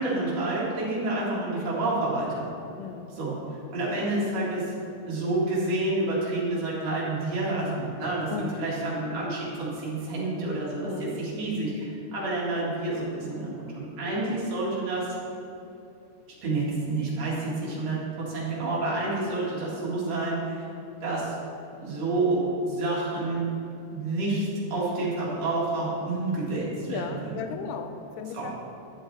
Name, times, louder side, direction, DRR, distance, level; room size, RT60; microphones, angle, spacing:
voice 1, 0.0-2.4 3.2-3.3 3.7-4.6 5.1-15.1 16.4-20.6 21.0-21.3 21.8-23.5 23.9-27.3 28.3-28.5, right 2 dB, 45° right, -7 dB, 2.8 m, -29 dB
voice 2, 2.8-3.1 3.9-4.1 8.3-8.6 10.8-11.1 14.1-14.4 26.9-28.5, left 6 dB, 90° left, 7 dB, 2.6 m, -36 dB
11.5 x 7.6 x 3.3 m, 2.8 s
omnidirectional pair, 4.6 m